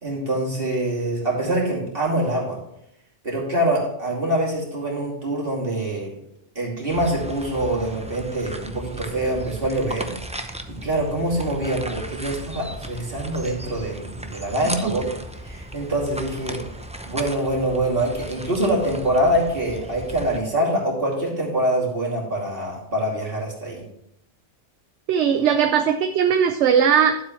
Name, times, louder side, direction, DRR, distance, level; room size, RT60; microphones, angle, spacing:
voice 1, 0.0-2.6 3.2-6.1 6.5-10.1 10.5-10.6 10.8-15.1 15.4-16.6 17.0-23.8, right 1 dB, 45° right, -3 dB, 2.9 m, -24 dB
sound 1, 6.9-20.4, right 1 dB, 10° right, 0.3 m, -36 dB
voice 2, 25.1-27.2, right 8 dB, 70° right, 8 dB, 0.9 m, -19 dB
12.0 x 7.7 x 3.1 m, 0.76 s
omnidirectional pair, 1.3 m